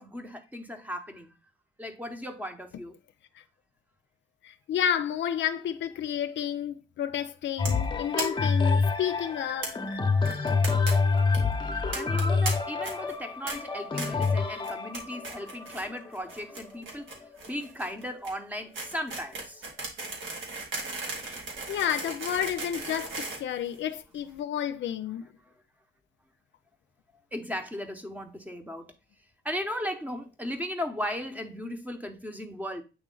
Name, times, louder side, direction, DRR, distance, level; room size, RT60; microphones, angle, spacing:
voice 1, 0.0-1.3 1.8-3.0 11.9-19.7 21.2-21.4 25.4-25.5 27.3-28.9 29.4-32.8, equal, 10° right, 1.0 m, -36 dB
voice 2, 4.4-9.7 21.2-21.4 21.7-25.2, left 9 dB, 65° left, 0.6 m, -31 dB
sound 1, 7.6-17.4 18.0-18.1, left 4 dB, 25° left, 0.9 m, -27 dB
sound 2, 7.6-7.8 8.2-8.3 8.5-8.6 8.8-8.9 9.6-9.7 10.2-10.9 11.2-11.4 11.9-12.5 12.8-13.1 13.5-13.6 14.0-14.3 14.6-15.0 15.2-15.8 16.1-24.2, right 3 dB, 75° right, 2.1 m, -36 dB
8.2 x 3.1 x 3.9 m
cardioid pair, 90°, 20 cm